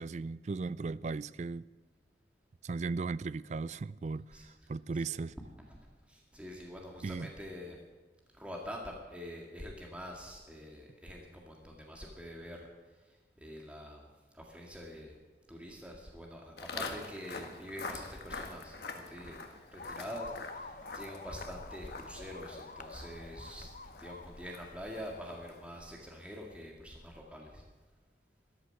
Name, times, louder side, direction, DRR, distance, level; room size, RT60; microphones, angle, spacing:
voice 1, 0.0-1.7 2.6-5.3 7.0-7.3, right 4 dB, 40° right, 0.3 m, -37 dB
voice 2, 4.3-4.7 5.1-5.2 6.1-7.8 8.3-14.0 14.3-15.2 15.5-27.6, equal, 5° right, 1.8 m, -46 dB
Walk footsteps, 16.6-25.8, left 4 dB, 65° left, 1.6 m, -46 dB
sound 1, 19.8-26.1, left 3 dB, 45° left, 0.8 m, -49 dB
13.5 x 12.5 x 6.6 m
head